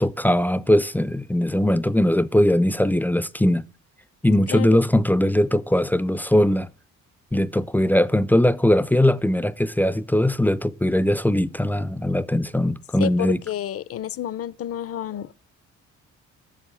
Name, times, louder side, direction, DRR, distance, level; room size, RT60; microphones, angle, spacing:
voice 1, 0.0-3.7 4.2-6.7 7.3-13.4, left 1 dB, 5° left, 0.4 m, -20 dB
voice 2, 4.5-4.8 13.0-15.3, left 10 dB, 50° left, 0.6 m, -30 dB
7.3 x 7.3 x 6.9 m
cardioid pair, 90°, 30 cm